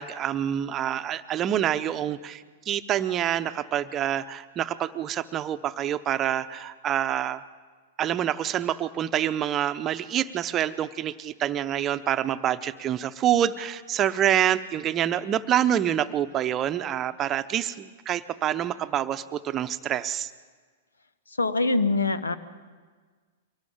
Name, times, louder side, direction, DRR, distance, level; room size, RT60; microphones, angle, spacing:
voice 1, 0.0-7.4 8.0-20.3, right 10 dB, 30° right, 11 dB, 0.8 m, -27 dB
voice 2, 21.4-22.3, left 3 dB, 85° left, 13 dB, 1.1 m, -23 dB
23.5 x 19.0 x 7.3 m, 1.5 s
hypercardioid pair, 105°, 0 cm